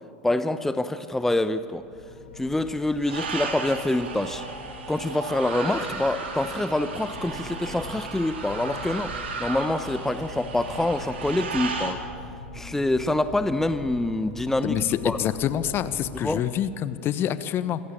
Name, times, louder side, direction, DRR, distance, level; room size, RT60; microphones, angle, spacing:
voice 1, 0.2-1.8 2.4-4.4 4.9-9.1 9.4-12.0 12.5-14.8 15.0-15.2 16.1-16.4, left 2 dB, 5° left, 12 dB, 0.8 m, -26 dB
sound 1, 1.7-16.3, left 2 dB, 85° left, 3.1 m, -42 dB
sound 2, 3.0-11.9, right 4 dB, 75° right, 2.9 m, -35 dB
sound 3, 4.6-7.8, left 1 dB, 70° left, 3.2 m, -50 dB
voice 2, 14.6-17.8, left 10 dB, 40° left, 14 dB, 1.1 m, -26 dB
25.5 x 15.5 x 8.6 m, 2.5 s
hypercardioid pair, 85°, 6 cm